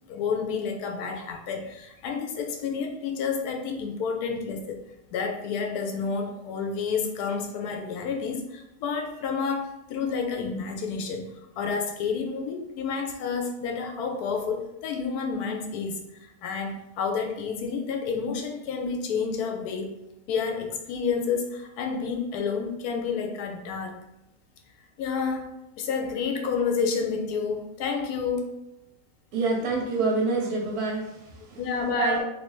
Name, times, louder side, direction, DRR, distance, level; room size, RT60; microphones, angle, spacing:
voice 1, 0.1-4.9 5.1-20.0 20.3-24.1 25.0-28.5 31.6-32.2, left 5 dB, 80° left, 4 dB, 1.1 m, -30 dB
voice 2, 29.3-32.2, right 3 dB, 80° right, -1 dB, 1.2 m, -27 dB
3.2 x 2.7 x 3.0 m, 0.87 s
omnidirectional pair, 1.6 m